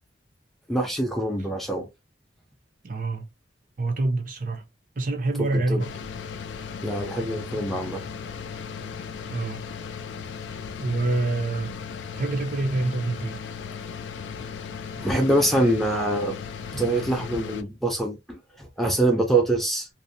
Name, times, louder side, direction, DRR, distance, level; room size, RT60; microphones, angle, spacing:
voice 1, 0.7-1.9 5.4-5.8 6.8-8.0 15.0-16.3 16.7-19.9, right 1 dB, ahead, 0.5 m, -24 dB
voice 2, 2.8-3.3 3.8-4.6 5.0-5.9 9.3-9.6 10.8-11.8 12.1-13.4, right 2 dB, 45° right, 0.5 m, -26 dB
sound 1, 5.8-17.6, left 6 dB, 65° left, 0.3 m, -36 dB
2.6 x 2.0 x 2.6 m
head